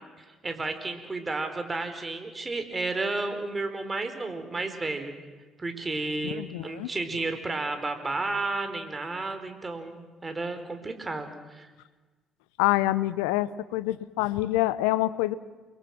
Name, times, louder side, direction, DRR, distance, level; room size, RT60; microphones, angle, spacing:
voice 1, 0.2-5.1 5.6-11.7, right 3 dB, 25° right, 7 dB, 4.4 m, -32 dB
voice 2, 6.2-6.9 12.6-15.4, left 16 dB, 75° left, 17 dB, 0.8 m, -26 dB
29.5 x 23.0 x 6.1 m, 1.3 s
hypercardioid pair, 50°, 0 cm